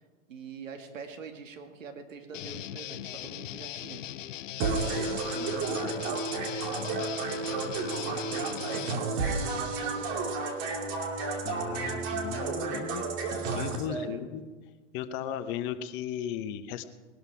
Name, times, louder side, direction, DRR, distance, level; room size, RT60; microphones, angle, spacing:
voice 1, 0.3-4.1 4.8-6.4 6.8-10.5 11.7-12.2 13.8-14.3, right 5 dB, 85° right, 6 dB, 2.3 m, -44 dB
Guitar, 2.3-9.0, left 12 dB, 80° left, 0.7 m, -40 dB
sound 1, 4.6-13.8, right 4 dB, 40° right, 2.5 m, -32 dB
voice 2, 4.9-5.5 11.4-13.0 13.5-14.4 14.9-16.8, left 9 dB, 30° left, 10 dB, 0.9 m, -36 dB
20.5 x 12.0 x 4.9 m, 1.4 s
hypercardioid pair, 140°, 38 cm